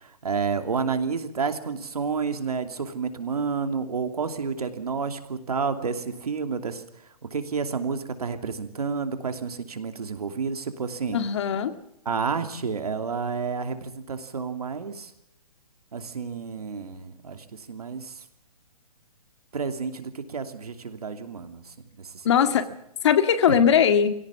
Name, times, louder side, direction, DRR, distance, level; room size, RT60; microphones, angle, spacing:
voice 1, 0.0-6.8 7.3-11.2 12.0-15.1 15.9-18.2 19.5-22.3 23.5-23.6, right 5 dB, 85° right, 8 dB, 2.8 m, -30 dB
voice 2, 11.1-11.7 22.2-22.7 23.0-24.1, left 8 dB, 50° left, 10 dB, 1.9 m, -20 dB
22.0 x 17.0 x 7.1 m, 0.76 s
hypercardioid pair, 155°, 19 cm